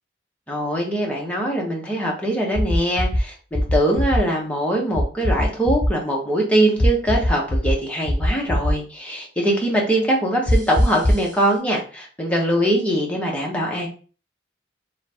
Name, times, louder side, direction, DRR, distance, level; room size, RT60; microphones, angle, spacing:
voice 1, 0.5-13.9, right 1 dB, 5° left, -2 dB, 0.8 m, -22 dB
sound 1, 2.5-3.2 3.5-4.2 4.9-5.9 6.8-7.7 8.0-8.7 10.5-11.3, equal, 25° right, 1.4 m, -20 dB
3.1 x 2.5 x 3.3 m, 0.39 s
head